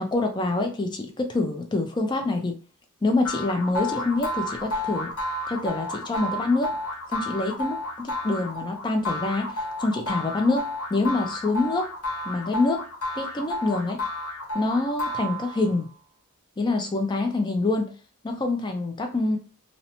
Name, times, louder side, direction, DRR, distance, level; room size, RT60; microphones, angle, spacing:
voice 1, 0.0-2.6 3.0-5.1 5.5-6.7 7.1-11.9 12.2-12.8 13.2-14.0 14.5-15.9 16.6-17.9 18.2-19.4, left 2 dB, 20° left, 4 dB, 0.4 m, -26 dB
sound 1, 3.2-15.8, left 1 dB, 85° left, 0.9 m, -31 dB
2.8 x 2.0 x 2.8 m, 0.37 s
head